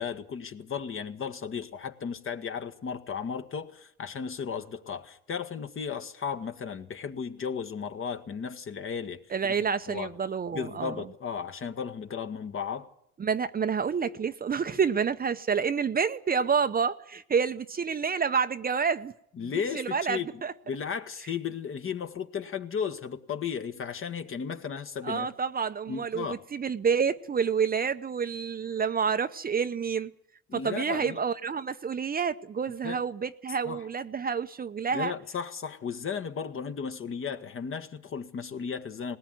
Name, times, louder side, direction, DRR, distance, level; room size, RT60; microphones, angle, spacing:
voice 1, 0.0-10.1 10.5-12.9 19.4-25.3 25.9-26.4 30.5-31.2 32.8-33.0 33.6-33.8 34.9-39.2, left 6 dB, 40° left, 1.7 m, -35 dB
voice 2, 9.3-11.0 13.2-19.1 19.7-20.5 25.0-30.1 30.5-35.1, right 6 dB, 25° right, 0.8 m, -28 dB
19.5 x 18.0 x 9.3 m
supercardioid pair, 85°, 33 cm